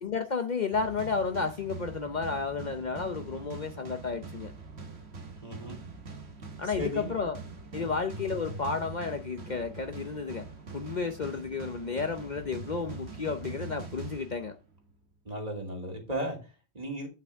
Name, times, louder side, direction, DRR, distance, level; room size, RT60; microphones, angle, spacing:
voice 1, 0.0-4.5 6.6-7.4 7.7-10.5 10.7-14.5, left 5 dB, 45° left, 0.8 m, -32 dB
sound 1, 0.7-14.9, right 4 dB, 70° right, 1.7 m, -43 dB
voice 2, 5.4-5.8 6.6-7.1 7.7-8.0 15.2-17.1, right 1 dB, 35° right, 2.8 m, -36 dB
8.9 x 7.0 x 3.5 m
omnidirectional pair, 1.1 m